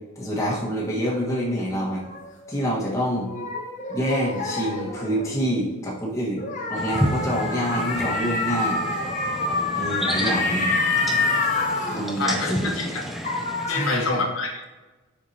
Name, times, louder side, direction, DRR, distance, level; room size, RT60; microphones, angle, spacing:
voice 1, 0.1-2.0 2.5-3.3 3.9-6.4 6.7-8.8 9.7-10.8 11.9-12.7 13.7-14.2, equal, 15° left, -5 dB, 1.5 m, -26 dB
sound 1, 0.8-5.5 6.4-12.9 13.2-14.0, left 3 dB, 35° left, 1.0 m, -28 dB
sound 2, 6.7-13.7, equal, ahead, 0.4 m, -31 dB
voice 2, 12.2-13.0 13.7-14.7, left 3 dB, 70° left, 1 dB, 1.2 m, -27 dB
7.2 x 5.9 x 2.9 m, 1.2 s
head